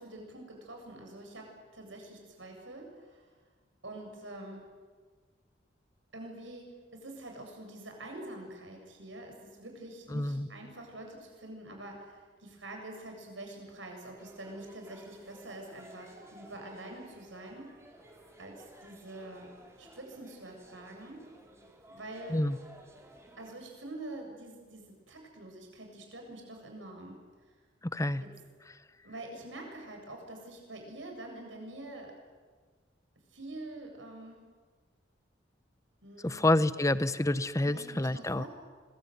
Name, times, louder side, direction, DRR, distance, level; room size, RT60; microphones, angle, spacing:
voice 1, 0.0-3.3 3.8-4.7 6.1-17.8 18.4-19.5 19.8-21.3 21.9-22.5 23.4-27.2 28.2-28.3 29.0-32.2 33.3-34.4 36.0-36.6 37.6-38.5, right 1 dB, 80° right, 2 dB, 7.8 m, -46 dB
voice 2, 10.1-10.5 22.3-22.6 27.9-28.2 36.2-38.4, left 1 dB, 15° left, 14 dB, 0.9 m, -28 dB
sound 1, 14.2-23.6, right 1 dB, 15° right, 3.8 m, -55 dB
26.0 x 22.5 x 9.4 m, 1.4 s
head